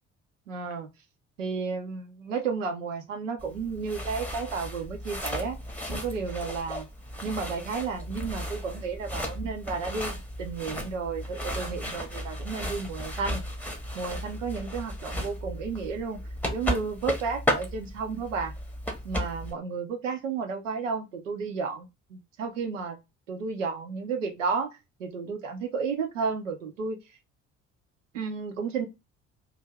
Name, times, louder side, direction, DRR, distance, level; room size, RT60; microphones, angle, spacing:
voice 1, 0.5-0.9 1.4-5.6 5.9-6.9 7.2-13.4 13.9-16.2 16.5-18.5 19.0-23.0 23.3-24.7 25.0-27.0 28.1-28.9, right 5 dB, 80° right, 0.6 m, -32 dB
sound 1, 3.4-19.5, left 1 dB, 5° left, 0.8 m, -34 dB
2.6 x 2.3 x 3.2 m
figure-of-eight pair, 50°, 38 cm